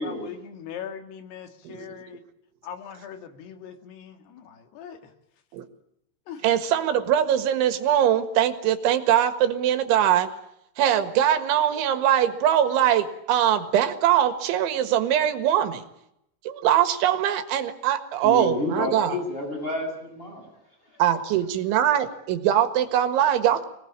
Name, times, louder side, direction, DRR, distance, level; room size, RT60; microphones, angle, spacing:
voice 1, 0.0-2.2 2.6-5.1 6.3-6.4, left 8 dB, 65° left, 7 dB, 3.8 m, -40 dB
voice 2, 6.4-10.3 10.8-15.8 16.5-19.2 21.0-23.7, right 10 dB, 75° right, 10 dB, 3.9 m, -22 dB
voice 3, 18.2-20.5 20.9-21.0, left 1 dB, 10° left, 2 dB, 7.7 m, -29 dB
25.5 x 19.0 x 8.8 m, 0.79 s
omnidirectional pair, 5.5 m